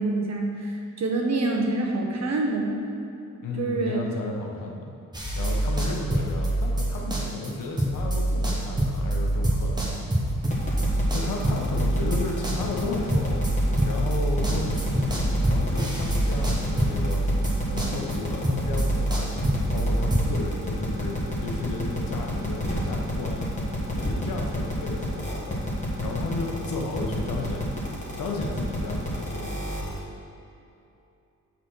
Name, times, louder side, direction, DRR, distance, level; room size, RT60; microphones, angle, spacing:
voice 1, 0.0-2.8 3.6-4.0, right 2 dB, 55° right, 0 dB, 1.1 m, -26 dB
voice 2, 3.4-4.9 5.3-10.1 11.1-13.4 13.8-17.2 17.6-23.5 23.8-27.7 28.2-29.7, left 3 dB, 90° left, 0 dB, 1.2 m, -34 dB
sound 1, 5.1-7.5 7.8-20.3, right 1 dB, 15° right, 1.3 m, -26 dB
sound 2, 10.5-30.0, left 1 dB, 20° left, 1.7 m, -31 dB
6.9 x 4.2 x 6.3 m, 2.7 s
cardioid pair, 120°, 32 cm